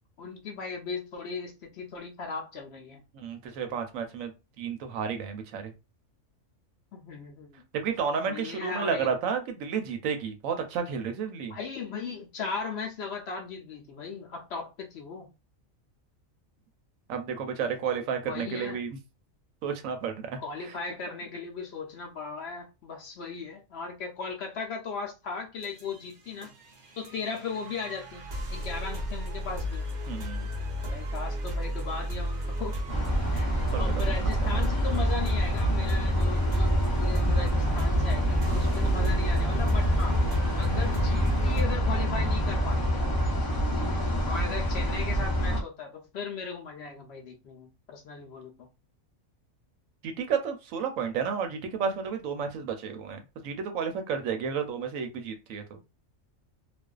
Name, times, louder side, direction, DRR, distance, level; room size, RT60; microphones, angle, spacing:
voice 1, 0.2-3.0 6.9-7.6 8.2-9.1 11.5-15.3 18.2-18.8 20.4-26.5 27.0-29.9 30.8-32.8 33.3-40.2 40.6-43.3 44.3-48.7, left 4 dB, 65° left, 0.7 m, -37 dB
voice 2, 3.1-4.3 4.6-5.7 7.7-11.6 17.1-19.0 19.6-20.3 30.1-30.5 33.7-33.8 34.2-34.3 50.0-55.8, right 6 dB, 80° right, 1.0 m, -31 dB
sound 1, 25.6-41.6, equal, 45° right, 0.7 m, -34 dB
sound 2, 32.9-45.6, equal, 35° left, 0.3 m, -26 dB
2.5 x 2.2 x 2.3 m
omnidirectional pair, 1.4 m